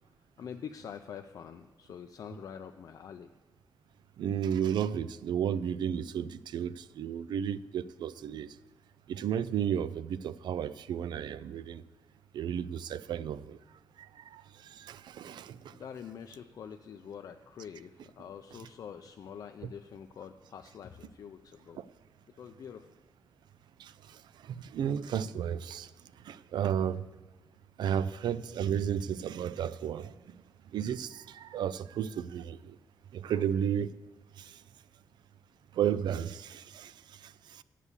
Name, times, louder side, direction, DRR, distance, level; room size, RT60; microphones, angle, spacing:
voice 1, 0.4-3.3 15.7-21.8 22.3-22.9 33.3-33.5, left 7 dB, 50° left, 0.4 m, -45 dB
voice 2, 4.2-8.5 9.1-11.8 12.3-13.6 14.3-15.7 21.8-21.9 23.8-23.9 24.4-25.9 26.3-27.0 27.8-30.1 30.7-32.6 33.1-33.9 34.4-34.5 35.8-36.9 37.2-37.6, right 9 dB, 90° right, 0.4 m, -33 dB
8.2 x 7.2 x 8.1 m
wide cardioid pair, 175°, 7 cm